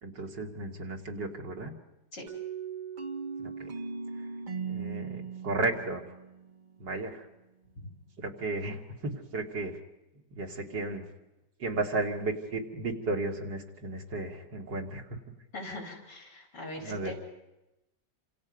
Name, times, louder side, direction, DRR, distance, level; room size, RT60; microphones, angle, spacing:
voice 1, 0.0-1.7 3.4-3.7 4.7-6.0 6.8-7.3 8.2-9.8 10.3-11.0 11.6-15.2 16.8-17.1, right 2 dB, 85° right, 1 dB, 3.2 m, -34 dB
sound 1, 2.3-7.0, right 5 dB, 35° right, 0.9 m, -39 dB
voice 2, 15.5-17.1, left 1 dB, 80° left, 1 dB, 4.7 m, -41 dB
28.5 x 26.5 x 5.4 m, 0.95 s
omnidirectional pair, 1.8 m